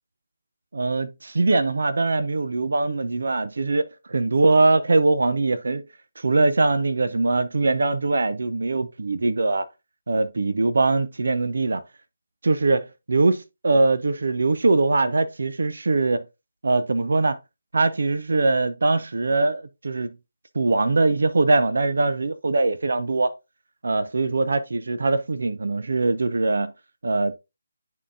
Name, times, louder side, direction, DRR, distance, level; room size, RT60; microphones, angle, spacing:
voice 1, 0.7-5.8 6.2-9.7 10.1-11.8 12.4-16.2 16.6-17.4 17.7-20.1 20.5-23.3 23.8-26.7 27.0-27.3, right 3 dB, 65° right, 0.5 m, -22 dB
10.5 x 3.7 x 2.6 m
figure-of-eight pair, 150°, 0 cm